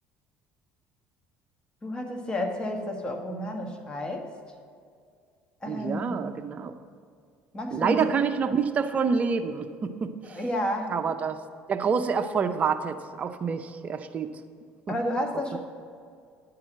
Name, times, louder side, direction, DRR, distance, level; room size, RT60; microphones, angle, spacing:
voice 1, 1.8-4.3 5.6-6.2 7.5-8.0 10.2-11.0 14.9-15.6, left 1 dB, 20° left, 3 dB, 1.4 m, -31 dB
voice 2, 5.7-6.7 7.7-10.4 10.9-11.4 11.7-14.3 14.9-15.0 15.5-15.6, right 6 dB, 35° right, 7 dB, 0.6 m, -27 dB
10.0 x 4.8 x 7.3 m, 2.2 s
cardioid pair, 110°, 4 cm